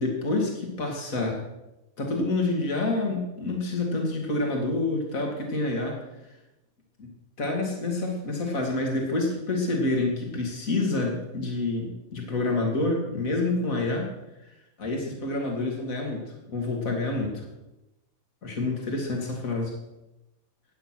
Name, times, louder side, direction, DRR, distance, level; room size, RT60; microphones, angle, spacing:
voice 1, 0.0-1.4 2.0-6.0 7.0-7.1 7.4-14.1 14.8-17.5 18.4-19.7, left 2 dB, 70° left, 1 dB, 2.8 m, -28 dB
14.5 x 9.4 x 6.2 m, 0.95 s
omnidirectional pair, 1.5 m